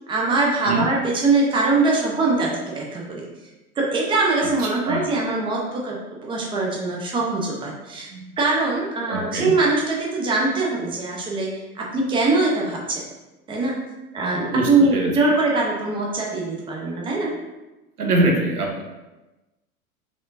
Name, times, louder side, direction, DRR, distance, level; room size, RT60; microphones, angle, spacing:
voice 1, 0.1-3.2 3.8-8.1 8.4-11.5 11.7-13.0 13.5-13.7 14.1-17.3, right 3 dB, 10° right, -3 dB, 0.7 m, -22 dB
voice 2, 4.6-5.1 8.1-8.2 9.1-9.5 14.5-15.1 18.0-18.8, right 2 dB, 80° right, 0 dB, 1.0 m, -23 dB
5.1 x 3.6 x 2.6 m, 1.1 s
figure-of-eight pair, 90°, 45 cm